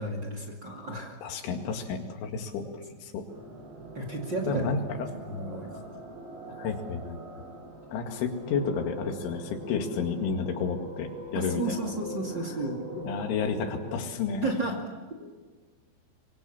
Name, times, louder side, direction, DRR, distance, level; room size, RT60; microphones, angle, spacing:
voice 1, 0.0-1.2 2.6-2.7 3.9-4.7 5.3-5.9 11.3-12.8 14.4-14.8 15.2-15.3, right 2 dB, 35° right, 2 dB, 2.0 m, -33 dB
voice 2, 1.2-2.7 3.0-3.2 4.5-5.1 6.5-7.2 7.9-11.9 13.0-14.5, left 5 dB, 80° left, 4 dB, 4.6 m, -31 dB
sound 1, 3.3-14.0, right 2 dB, 70° right, 7.2 m, -42 dB
25.0 x 23.5 x 7.2 m, 1.4 s
omnidirectional pair, 5.4 m